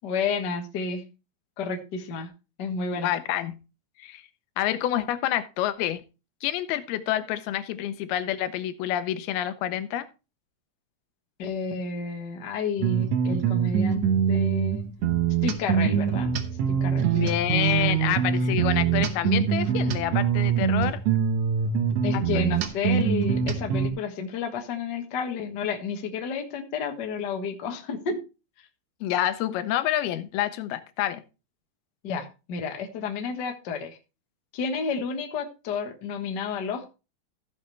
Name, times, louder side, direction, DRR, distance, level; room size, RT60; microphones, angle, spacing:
voice 1, 0.0-1.0 1.6-2.3 2.6-3.1 11.4-14.8 15.4-16.3 16.7-17.4 22.0-28.2 32.0-34.0 34.5-36.9, left 5 dB, 65° left, 1.0 m, -31 dB
voice 2, 2.9-3.6 4.0-4.2 4.6-6.0 6.4-10.1 17.1-21.0 22.1-22.5 29.0-31.2, left 12 dB, 85° left, 2.7 m, -28 dB
sound 1, 12.8-23.9, right 7 dB, 70° right, 1.6 m, -24 dB
14.5 x 6.7 x 3.2 m
omnidirectional pair, 4.3 m